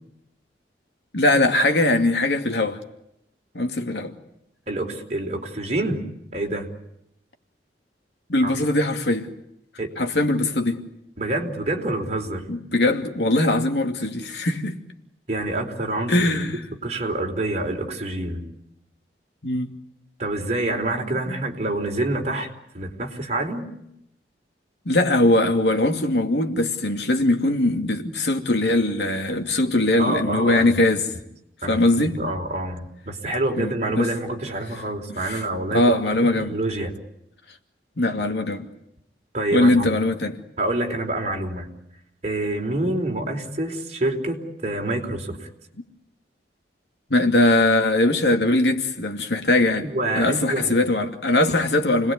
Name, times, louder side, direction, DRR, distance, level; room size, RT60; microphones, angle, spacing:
voice 1, 1.1-2.8 3.5-4.1 8.3-9.3 10.0-10.8 12.5-14.8 16.1-16.6 19.4-19.7 21.3-21.4 24.9-31.1 31.7-32.2 33.6-34.1 35.2-35.4 35.7-36.6 38.0-38.7 39.5-40.4 47.1-49.9 50.2-52.1, left 2 dB, 70° left, 2.6 m, -21 dB
voice 2, 4.7-6.0 6.3-6.7 8.4-8.6 9.8-9.9 11.2-12.5 15.3-16.1 16.5-18.4 20.2-22.5 22.7-23.7 30.0-30.7 31.6-35.9 36.3-36.9 39.3-39.9 40.6-41.7 42.2-45.5 49.8-50.8, right 2 dB, 40° right, 4.3 m, -27 dB
29.5 x 20.5 x 9.6 m
head